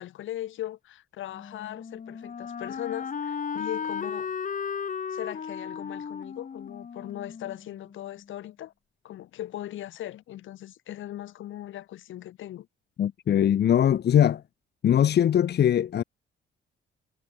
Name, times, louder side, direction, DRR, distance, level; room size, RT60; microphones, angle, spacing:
voice 1, 0.0-4.3 5.1-8.7 9.0-12.7, left 13 dB, 80° left, 2.3 m, -39 dB
Wind instrument woodwind instrument, 1.3-8.2, left 6 dB, 40° left, 2.3 m, -35 dB
voice 2, 13.0-14.4 14.8-16.0, left 10 dB, 55° left, 1.1 m, -21 dB
cardioid pair, 90°, 20 cm